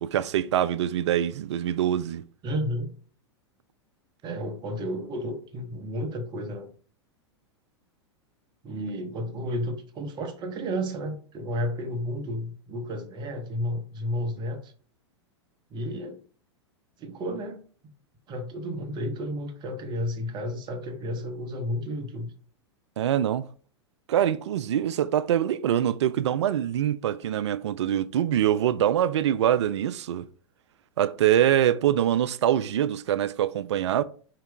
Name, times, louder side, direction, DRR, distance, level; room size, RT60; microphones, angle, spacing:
voice 1, 0.0-2.2 23.0-23.4 24.1-30.2 31.0-34.0, right 10 dB, 75° right, 0.4 m, -24 dB
voice 2, 2.4-2.9 4.2-6.7 8.6-14.7 15.7-16.2 17.0-17.6 18.3-22.3, equal, 30° right, 0.9 m, -32 dB
4.5 x 2.8 x 3.2 m
hypercardioid pair, 100°, 15 cm